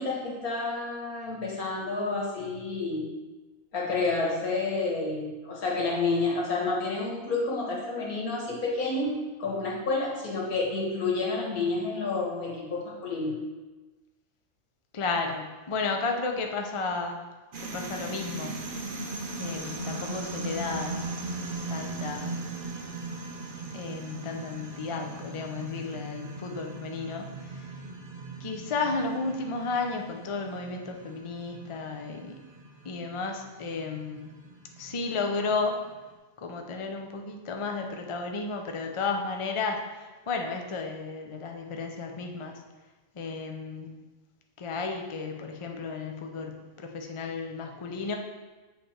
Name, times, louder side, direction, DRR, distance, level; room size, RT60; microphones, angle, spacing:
voice 1, 0.0-3.1 3.7-9.1 9.4-13.3, left 3 dB, 90° left, -3 dB, 1.9 m, -29 dB
voice 2, 14.9-17.2 17.6-18.7 19.4-21.1 21.7-22.4 23.7-27.7 28.4-32.4 32.8-34.3 34.8-35.8 36.4-42.6 43.1-43.9 44.6-48.1, left 4 dB, 50° left, 3 dB, 0.3 m, -33 dB
sound 1, 17.5-36.0, right 2 dB, 45° right, 0.8 m, -39 dB
7.8 x 3.4 x 4.4 m, 1.2 s
omnidirectional pair, 1.5 m